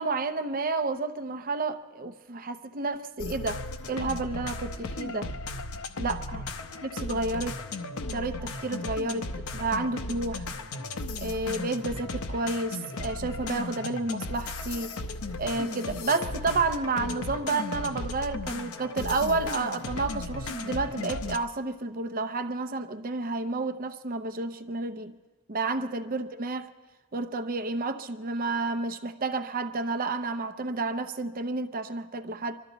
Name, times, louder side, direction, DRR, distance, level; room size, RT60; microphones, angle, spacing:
voice 1, 0.0-3.6 3.9-5.3 6.0-6.4 6.8-7.6 8.1-10.5 11.2-15.0 15.4-25.1 25.5-26.7 27.1-32.6, right 3 dB, 40° right, 0.7 m, -30 dB
sound 1, 3.2-21.4, left 2 dB, 65° left, 0.8 m, -36 dB
25.5 x 12.5 x 4.0 m
head